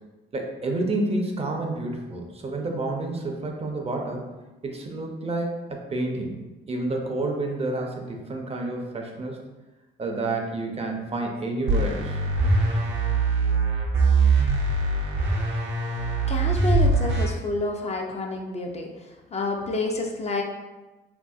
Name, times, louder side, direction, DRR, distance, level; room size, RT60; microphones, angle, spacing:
voice 1, 0.3-4.3 4.6-6.4 6.7-9.4 10.0-12.2, right 2 dB, 30° right, 2 dB, 0.5 m, -29 dB
sound 1, 11.7-17.3, right 3 dB, 75° right, 0.7 m, -22 dB
voice 2, 16.3-18.9 19.3-20.4, left 3 dB, 35° left, 1 dB, 0.4 m, -28 dB
2.9 x 2.6 x 2.3 m, 1.1 s
cardioid pair, 90°, 20 cm